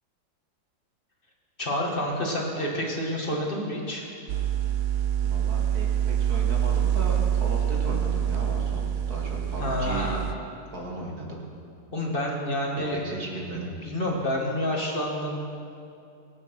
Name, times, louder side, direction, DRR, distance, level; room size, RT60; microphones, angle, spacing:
voice 1, 1.6-4.1 9.6-10.3 11.9-13.0 13.8-15.4, left 1 dB, 30° left, -1 dB, 2.0 m, -28 dB
sound 1, 4.3-10.3, right 9 dB, 70° right, 1.0 m, -26 dB
voice 2, 5.2-10.1 10.7-11.5 12.8-13.7, right 2 dB, 55° right, -2 dB, 2.7 m, -36 dB
23.5 x 8.0 x 5.9 m, 2.5 s
omnidirectional pair, 2.0 m